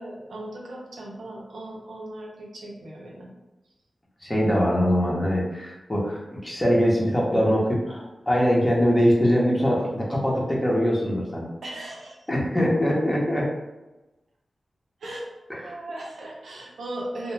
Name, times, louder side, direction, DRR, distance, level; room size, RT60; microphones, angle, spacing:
voice 1, 0.0-3.3 11.6-12.2 15.0-15.3 15.6-17.3, right 1 dB, 85° right, -2 dB, 0.6 m, -37 dB
voice 2, 4.2-11.5 12.3-13.5 15.5-15.8, equal, 20° left, -4 dB, 0.8 m, -22 dB
2.2 x 2.1 x 3.2 m, 1.0 s
cardioid pair, 45°, 0 cm